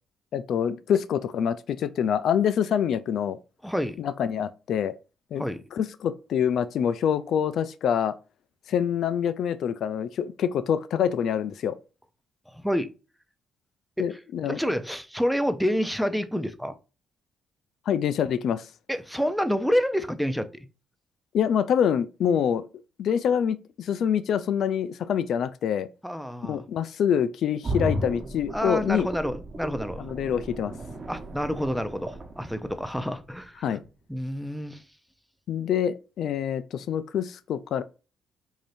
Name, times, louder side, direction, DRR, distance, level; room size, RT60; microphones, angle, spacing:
voice 1, 0.3-3.4 4.0-4.9 5.3-5.5 5.7-8.1 8.7-11.8 14.0-14.6 17.9-18.7 21.3-22.7 23.0-25.9 26.4-29.1 30.0-30.7 33.6-33.8 35.5-37.8, left 8 dB, 70° left, 0.3 m, -26 dB
voice 2, 3.6-4.0 5.4-5.6 12.5-12.9 14.0-14.2 14.5-16.8 18.9-20.7 26.0-26.6 28.5-30.0 31.1-33.8 34.1-34.8, equal, ahead, 0.5 m, -28 dB
sound 1, 27.6-33.4 33.8-33.9, right 1 dB, 30° right, 1.0 m, -35 dB
4.9 x 2.7 x 2.6 m
cardioid pair, 90°, 0 cm